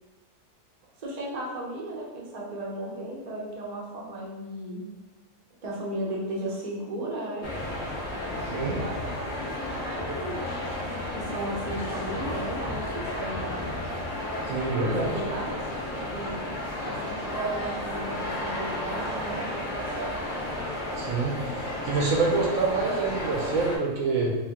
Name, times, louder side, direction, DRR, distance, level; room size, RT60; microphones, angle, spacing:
voice 1, 1.0-4.8 5.6-7.5 8.7-13.6 14.8-16.5 16.8-20.2, right 1 dB, 45° right, -3 dB, 0.5 m, -35 dB
sound 1, 7.4-23.8, left 1 dB, 60° left, 0.5 m, -33 dB
voice 2, 8.4-8.8 14.5-15.1 21.0-24.3, right 3 dB, 65° right, -2 dB, 0.9 m, -26 dB
3.5 x 2.4 x 3.5 m, 1.1 s
omnidirectional pair, 1.7 m